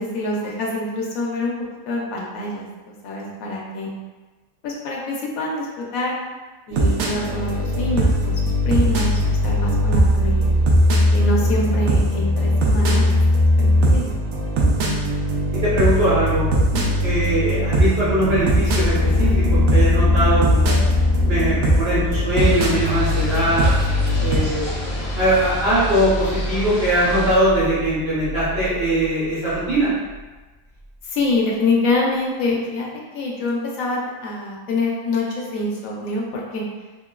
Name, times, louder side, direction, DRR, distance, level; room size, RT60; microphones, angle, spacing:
voice 1, 0.0-1.5 1.9-3.9 4.6-6.1 6.7-10.5 11.1-13.2 13.6-14.1 16.7-17.0 31.0-32.9 33.1-36.6, left 2 dB, 90° left, -3 dB, 1.0 m, -25 dB
sound 1, 6.7-24.4, equal, 65° right, 0.8 m, -19 dB
voice 2, 15.5-16.4 17.0-20.8 21.3-23.7 24.2-29.9, right 1 dB, 50° right, -13 dB, 1.3 m, -21 dB
sound 2, 17.9-30.2 30.8-30.9, left 3 dB, 15° right, 0.5 m, -27 dB
sound 3, 22.4-27.4, left 1 dB, 60° left, 0.8 m, -32 dB
2.9 x 2.9 x 2.3 m, 1.2 s
omnidirectional pair, 1.4 m